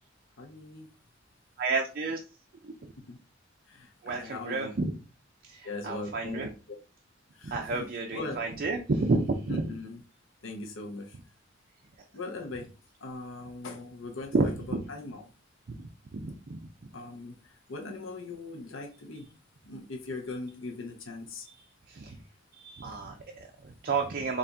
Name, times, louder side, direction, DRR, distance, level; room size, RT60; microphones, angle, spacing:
voice 1, 0.4-0.9 3.0-3.2 3.7-4.7 5.6-6.5 7.3-7.5 7.8-8.4 9.5-10.0 10.4-11.2 12.1-12.7 13.0-15.2 16.9-19.3 19.7-21.5 22.9-23.0, left 3 dB, 85° left, 0.7 m, -40 dB
voice 2, 1.6-2.2 2.6-2.7 4.0-4.9 5.5-6.5 7.4-9.6 14.3-14.8 15.7-16.7 21.9-22.2 22.5-24.4, right 3 dB, 50° right, 0.5 m, -31 dB
4.0 x 2.4 x 3.4 m
head